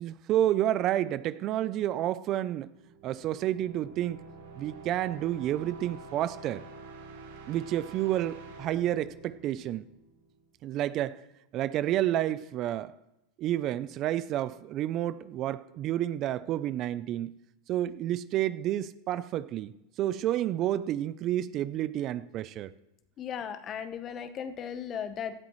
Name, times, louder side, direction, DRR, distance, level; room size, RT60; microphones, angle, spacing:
voice 1, 0.0-2.7 3.0-4.2 4.6-6.6 7.5-9.9 10.6-11.2 11.5-12.9 13.4-17.3 17.7-19.7 20.0-22.7, right 12 dB, 40° right, 0.5 m, -30 dB
sound 1, 2.7-10.4, right 3 dB, 90° right, 2.9 m, -48 dB
voice 2, 23.2-25.3, left 8 dB, 30° left, 1.0 m, -36 dB
17.5 x 12.5 x 3.2 m
supercardioid pair, 130°, 0 cm